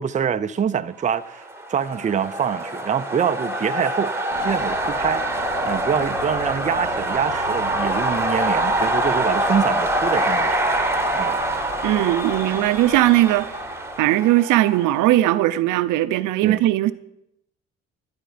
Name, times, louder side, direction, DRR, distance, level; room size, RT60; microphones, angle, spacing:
voice 1, 0.0-1.4 1.7-4.1 4.4-5.2 5.6-10.6 11.1-11.4 16.4-16.6, right 7 dB, 25° right, 0.5 m, -25 dB
sound 1, 1.4-15.2, right 1 dB, 10° right, 1.2 m, -25 dB
sound 2, 4.3-14.0, left 3 dB, 55° left, 4.2 m, -41 dB
voice 2, 11.8-13.5 14.0-16.9, right 15 dB, 80° right, 0.7 m, -19 dB
11.5 x 11.5 x 5.1 m
cardioid pair, 100°, 30 cm